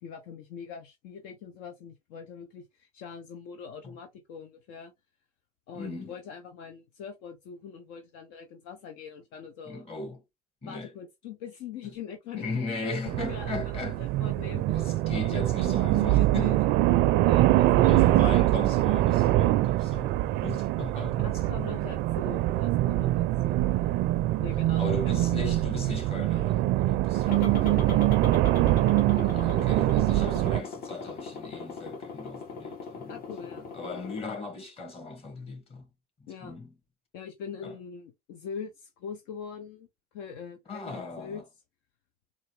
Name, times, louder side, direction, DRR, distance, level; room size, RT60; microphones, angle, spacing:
voice 1, 0.0-4.9 5.7-9.9 10.7-14.9 15.3-16.6 17.2-18.2 21.2-23.6 24.4-25.3 27.3-28.3 29.1-29.3 33.1-33.7 36.3-36.6 37.1-39.9 40.1-41.4, left 7 dB, 65° left, 0.8 m, -42 dB
voice 2, 5.7-6.1 9.7-10.2 10.6-10.9 11.8-11.9 12.3-14.0 14.7-16.6 17.8-21.3 24.8-27.5 29.1-33.1 33.7-35.9 36.2-36.7 37.6-37.7 40.7-41.4, left 3 dB, 30° left, 2.1 m, -38 dB
sound 1, 13.1-30.6, right 15 dB, 60° right, 0.4 m, -24 dB
sound 2, 27.2-34.2, left 5 dB, 50° left, 1.5 m, -39 dB
3.9 x 2.5 x 3.2 m
hypercardioid pair, 85°, 19 cm